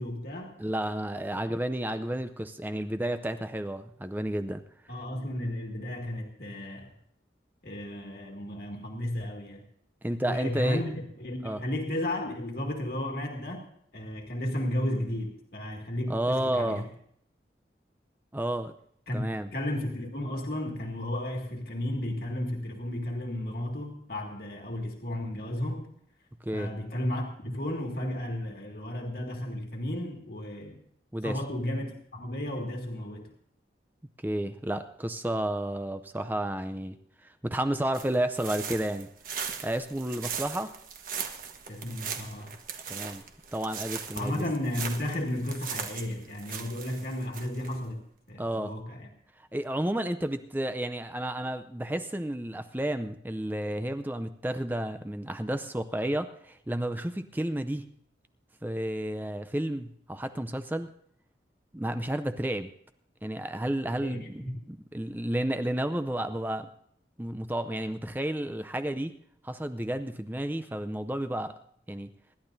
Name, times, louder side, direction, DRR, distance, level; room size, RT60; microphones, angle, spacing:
voice 1, 0.0-0.6 4.9-6.9 7.6-9.7 10.2-13.7 13.9-16.8 19.1-19.2 19.5-25.9 26.5-30.8 31.2-33.3 41.7-42.5 44.1-48.0 48.3-49.1 63.9-64.6, left 1 dB, 60° left, 1 dB, 2.1 m, -33 dB
voice 2, 0.6-4.6 10.0-10.8 11.4-11.6 16.1-16.9 18.3-18.7 19.1-19.5 26.4-26.7 31.1-31.4 34.2-37.0 37.2-39.1 39.6-40.7 42.9-43.2 43.5-44.4 48.4-48.7 49.5-57.9 58.6-60.9 61.7-62.7 63.2-64.4 64.7-66.7 67.2-69.1 69.4-71.5 71.9-72.1, right 1 dB, 10° right, 9 dB, 0.5 m, -31 dB
sound 1, 37.9-47.8, right 7 dB, 50° right, 1.3 m, -39 dB
25.5 x 12.0 x 2.7 m, 0.68 s
head